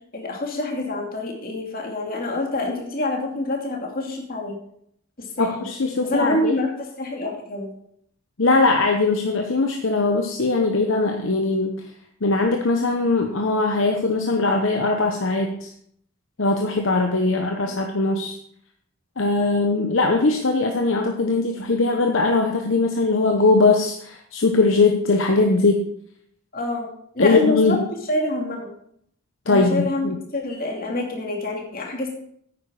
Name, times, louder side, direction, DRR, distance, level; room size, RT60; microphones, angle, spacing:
voice 1, 0.1-4.6 5.2-5.5 6.1-7.7 17.3-17.4 17.7-17.8 26.5-26.9 27.1-27.8 28.1-28.7 29.5-32.1, left 2 dB, 45° left, 0 dB, 2.7 m, -26 dB
voice 2, 5.4-6.5 8.4-11.8 12.2-15.7 16.4-18.4 19.2-25.8 27.2-27.8 29.5-30.2, left 3 dB, 60° left, 3 dB, 1.0 m, -20 dB
9.5 x 9.3 x 4.9 m, 0.68 s
head